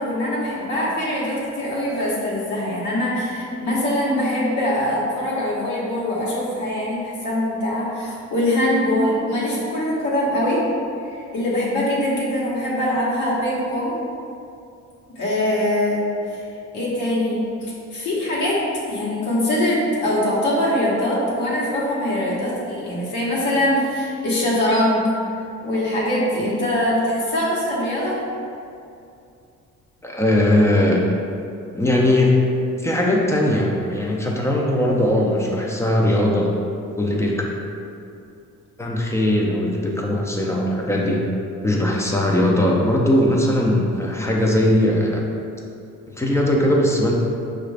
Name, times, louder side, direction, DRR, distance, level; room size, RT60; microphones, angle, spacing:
voice 1, 0.0-10.6 11.1-14.0 15.1-16.0 16.3-16.4 16.7-18.6 18.9-25.1 25.6-28.2, left 1 dB, 75° left, -7 dB, 1.1 m, -22 dB
voice 2, 30.0-31.0 31.7-32.3 32.8-36.5 37.0-37.4 38.8-41.2 41.6-45.2 46.2-47.1, left 1 dB, 10° left, -2 dB, 0.5 m, -19 dB
5.3 x 2.5 x 3.2 m, 2.5 s
cardioid pair, 120°, 30 cm